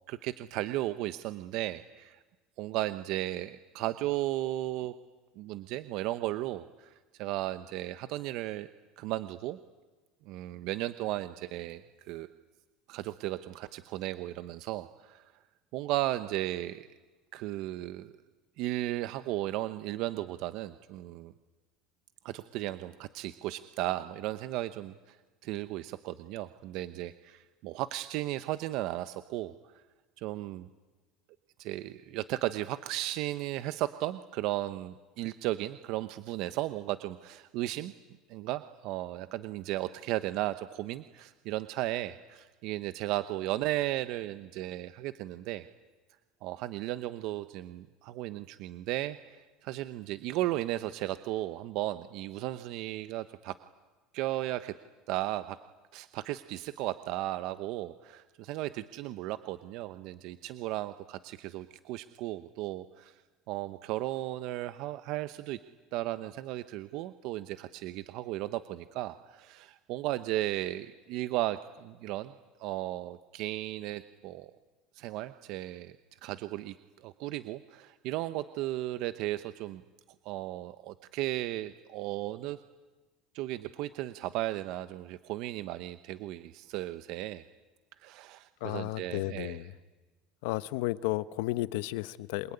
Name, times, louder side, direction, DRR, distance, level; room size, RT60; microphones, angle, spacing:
voice 1, 0.1-2.2 2.6-4.9 5.4-8.7 9.0-9.6 10.3-12.3 12.9-15.3 15.7-16.9 17.3-18.1 18.6-21.3 22.2-25.2 25.4-29.7 30.2-30.7 31.6-37.9 38.3-45.6 46.4-49.4 49.6-53.6 54.1-54.7 55.1-55.6 55.9-63.2 63.5-65.6 65.9-72.3 72.6-74.5 74.9-75.9 76.2-79.8 80.2-82.6 83.3-87.4 88.0-89.6, right 15 dB, 55° right, 0.9 m, -35 dB
voice 2, 88.6-89.7 90.4-92.5, left 18 dB, 75° left, 0.9 m, -33 dB
27.5 x 22.0 x 9.9 m
cardioid pair, 170°, 0 cm